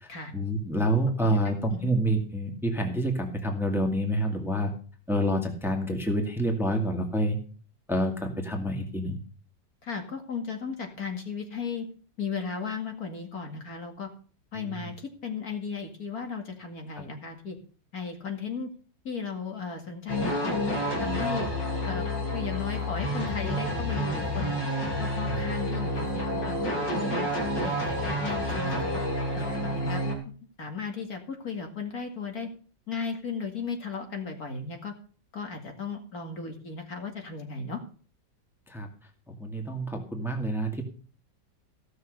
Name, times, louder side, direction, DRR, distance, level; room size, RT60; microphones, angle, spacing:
voice 1, 0.0-4.7 5.1-7.4 7.9-9.2 25.3-25.4 28.3-28.4 38.7-38.9 39.3-40.8, right 1 dB, ahead, 3 dB, 2.0 m, -28 dB
voice 2, 9.8-11.9 12.2-14.1 14.5-17.6 17.9-18.7 19.0-20.6 21.0-21.5 21.8-22.1 22.3-24.6 25.0-27.3 27.6-29.0 29.3-30.3 30.6-32.5 32.9-34.9 35.3-37.8, left 5 dB, 55° left, 4 dB, 2.5 m, -35 dB
sound 1, 20.1-30.2, equal, 85° left, 3.7 m, -29 dB
15.5 x 6.7 x 6.5 m, 0.41 s
omnidirectional pair, 1.9 m